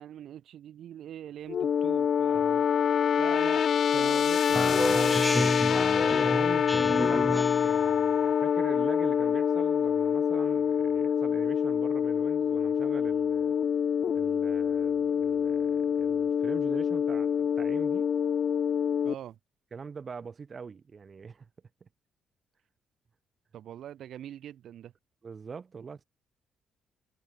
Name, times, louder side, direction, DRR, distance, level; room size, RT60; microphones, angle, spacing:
voice 1, 0.0-2.5 3.1-5.2 19.0-19.4 23.5-24.9, right 11 dB, 70° right, 8.0 m, -42 dB
sound 1, 1.5-19.1, left 7 dB, 55° left, 2.6 m, -26 dB
voice 2, 2.3-2.6 5.7-13.5 14.1-18.1 19.7-21.5 21.8-21.9 25.2-26.1, right 5 dB, 40° right, 7.4 m, -43 dB
Speech synthesizer, 4.5-7.9, equal, ahead, 0.6 m, -30 dB
cardioid pair, 90°, 0 cm